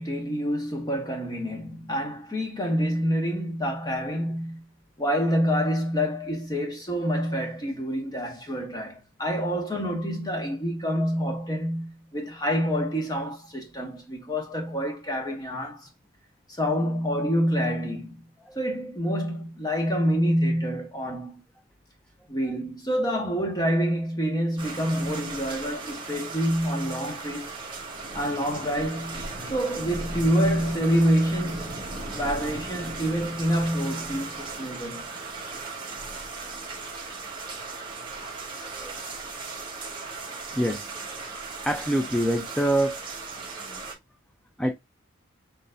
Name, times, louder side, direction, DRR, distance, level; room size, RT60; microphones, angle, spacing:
voice 1, 0.0-4.6 5.0-15.9 16.5-18.2 18.5-21.4 22.3-27.5 28.1-31.8 32.1-35.1, equal, 20° left, 1.4 m, -27 dB
sound 1, 24.6-43.9, right 3 dB, 25° right, 1.4 m, -37 dB
voice 2, 38.7-39.1 40.5-40.9 41.6-43.0 44.6-44.7, right 1 dB, 5° left, 0.4 m, -25 dB
6.7 x 3.2 x 2.5 m
head